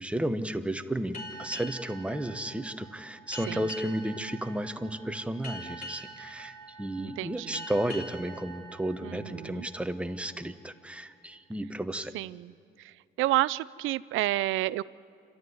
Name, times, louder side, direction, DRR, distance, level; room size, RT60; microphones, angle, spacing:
voice 1, 0.0-12.1, right 1 dB, 5° right, 8 dB, 1.1 m, -33 dB
sound 1, 1.1-10.3, equal, 45° left, 4.1 m, -44 dB
voice 2, 7.0-7.6 9.0-9.7 12.1-12.5 13.2-14.8, right 16 dB, 85° right, 19 dB, 0.5 m, -30 dB
27.0 x 13.0 x 9.5 m, 2.3 s
cardioid pair, 90°, 20 cm